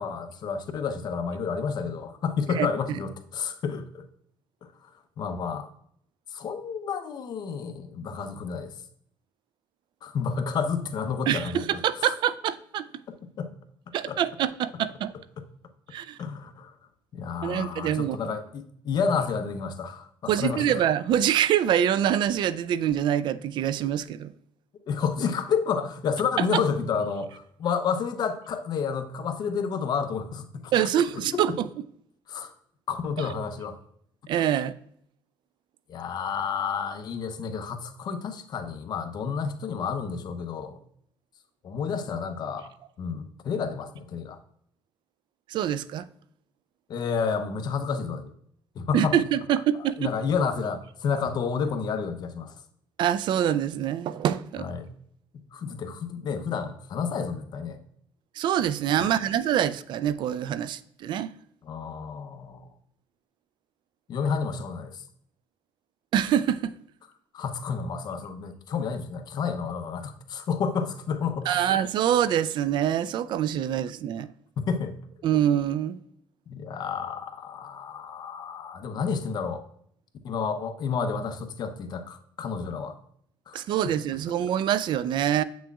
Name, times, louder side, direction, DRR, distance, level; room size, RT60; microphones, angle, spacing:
voice 1, 0.0-4.0 4.8-4.9 5.2-5.7 6.3-8.7 10.0-12.1 13.4-13.5 14.1-14.2 16.2-16.7 17.1-20.8 24.9-30.7 31.1-31.4 32.3-32.5 32.9-33.8 35.9-40.8 41.6-42.7 43.0-44.4 46.9-48.3 48.7-49.3 49.7-52.5 54.6-54.9 55.3-57.8 59.0-59.1 61.6-62.7 64.1-65.0 67.3-71.8 74.6-75.0 76.5-79.6 80.2-83.0 83.5-84.0, left 6 dB, 55° left, 0.8 m, -30 dB
voice 2, 2.6-3.0 11.3-12.8 13.9-15.1 15.9-16.2 17.4-18.2 20.3-24.3 30.7-31.7 34.3-34.7 45.5-46.1 48.9-50.1 53.0-54.7 58.4-61.3 66.1-66.7 71.5-74.3 75.2-76.0 83.5-85.4, right 10 dB, 70° right, 0.4 m, -25 dB
8.2 x 6.1 x 2.3 m
cardioid pair, 110°, 8 cm